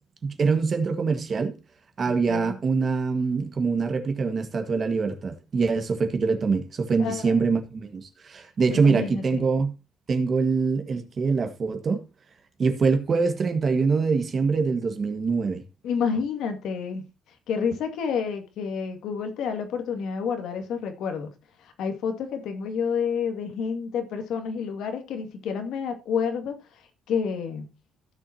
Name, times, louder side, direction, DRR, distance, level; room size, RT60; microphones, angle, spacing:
voice 1, 0.2-1.5 2.0-9.7 10.1-12.0 12.6-15.6, right 4 dB, 35° right, 1.6 m, -24 dB
voice 2, 2.1-2.6 7.0-7.4 8.7-9.4 15.8-17.0 17.5-21.3 21.6-27.7, left 6 dB, 75° left, 2.1 m, -29 dB
16.0 x 7.2 x 2.8 m
cardioid pair, 155°, 0 cm